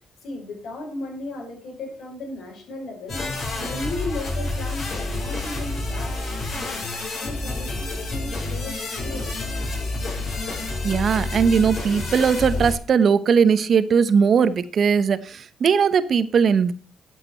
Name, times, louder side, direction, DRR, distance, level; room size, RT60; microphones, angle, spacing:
voice 1, 0.2-6.2 6.5-9.4, left 2 dB, 70° left, 5.2 m, -35 dB
sound 1, 3.1-12.7, left 2 dB, 55° left, 6.7 m, -29 dB
voice 2, 10.8-16.7, right 6 dB, 55° right, 1.0 m, -19 dB
12.0 x 7.6 x 4.5 m
cardioid pair, 90°, 0 cm